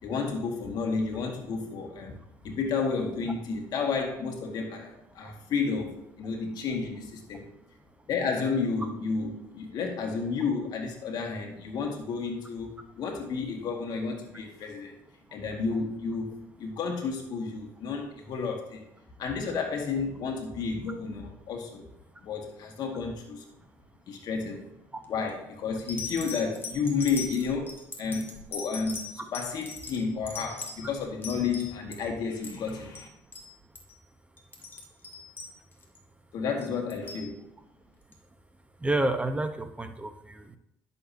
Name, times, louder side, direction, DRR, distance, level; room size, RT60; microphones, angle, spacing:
voice 1, 0.0-7.5 8.1-15.0 15.3-18.9 19.2-21.9 22.2-23.4 24.1-24.7 25.1-33.1 36.3-37.5, left 5 dB, 60° left, 2 dB, 1.9 m, -31 dB
sound 1, 25.0-25.3 25.9-32.0 32.3-32.7 32.9-33.1 33.3-33.5 33.7-34.0 34.4-36.0 36.6-37.3 38.1-38.2, left 4 dB, 30° left, 2.1 m, -40 dB
voice 2, 38.8-40.6, right 2 dB, 15° right, 8 dB, 1.0 m, -29 dB
11.0 x 7.0 x 2.8 m, 0.82 s
supercardioid pair, 80°, 8 cm